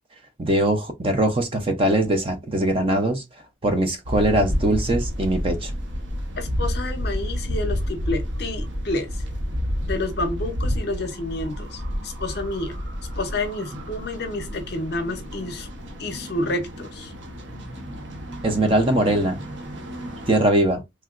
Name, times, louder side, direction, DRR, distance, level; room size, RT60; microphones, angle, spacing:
voice 1, 0.4-3.2 3.6-5.7 18.4-19.4 20.3-20.8, right 1 dB, 25° right, 0.4 m, -21 dB
sound 1, 4.0-20.4, equal, 60° right, 0.7 m, -30 dB
voice 2, 6.4-9.1 9.8-12.8 13.2-15.7 16.0-17.1, left 2 dB, 50° left, 0.6 m, -29 dB
3.2 x 2.8 x 2.4 m
head